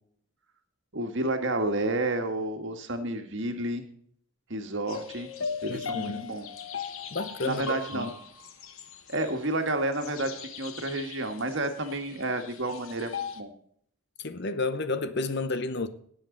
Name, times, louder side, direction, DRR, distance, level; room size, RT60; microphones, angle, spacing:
voice 1, 0.9-3.9 4.5-5.3 5.6-6.5 7.4-8.1 9.1-13.5, right 2 dB, 55° right, 1.7 m, -30 dB
sound 1, 4.9-13.4, left 5 dB, 70° left, 1.1 m, -39 dB
voice 2, 5.7-6.3 7.1-8.1 14.2-15.9, left 3 dB, 50° left, 0.8 m, -31 dB
18.0 x 7.9 x 3.9 m
head